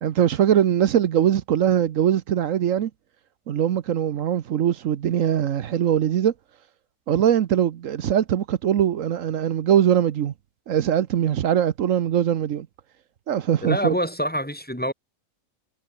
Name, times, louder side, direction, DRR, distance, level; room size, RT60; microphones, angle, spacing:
voice 1, 0.0-2.9 3.5-6.3 7.1-10.3 10.7-12.7 13.3-13.9, right 10 dB, 70° right, 1.2 m, -21 dB
voice 2, 13.6-14.9, equal, 5° left, 3.1 m, -26 dB
omnidirectional pair, 1.4 m